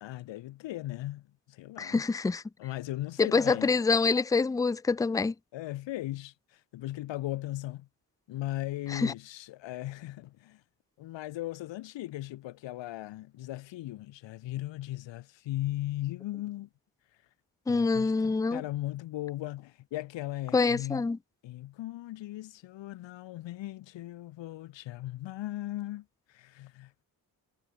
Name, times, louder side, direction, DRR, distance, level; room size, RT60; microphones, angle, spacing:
voice 1, 0.0-2.0 2.6-3.9 5.5-7.9 8.3-10.6 11.0-16.7 17.7-21.1 21.4-27.0, left 16 dB, 85° left, 1.9 m, -38 dB
voice 2, 1.8-2.4 3.2-5.3 8.9-9.1 17.7-18.6 20.5-21.2, left 4 dB, 10° left, 0.4 m, -26 dB
supercardioid pair, 45°, 43 cm